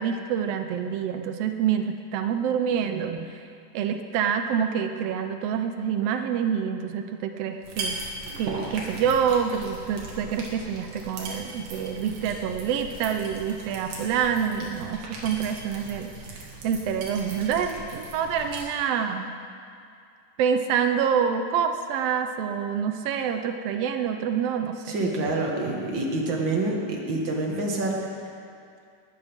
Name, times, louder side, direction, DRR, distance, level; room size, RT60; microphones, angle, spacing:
voice 1, 0.0-3.4 3.7-8.0 8.4-19.3 20.4-25.4, right 7 dB, 90° right, 7 dB, 1.3 m, -27 dB
sound 1, 7.6-18.6, right 2 dB, 75° right, 3.3 m, -38 dB
voice 2, 24.9-28.1, right 2 dB, 45° right, -1 dB, 2.0 m, -27 dB
19.5 x 13.5 x 3.6 m, 2.4 s
omnidirectional pair, 3.6 m